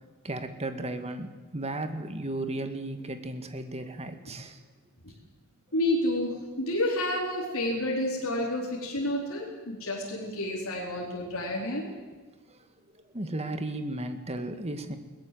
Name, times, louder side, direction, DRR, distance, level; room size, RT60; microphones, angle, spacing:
voice 1, 0.2-4.6 13.1-15.0, right 1 dB, 30° right, 8 dB, 1.9 m, -34 dB
voice 2, 5.7-11.9, left 1 dB, 65° left, -3 dB, 4.5 m, -30 dB
21.5 x 19.0 x 7.9 m, 1.3 s
head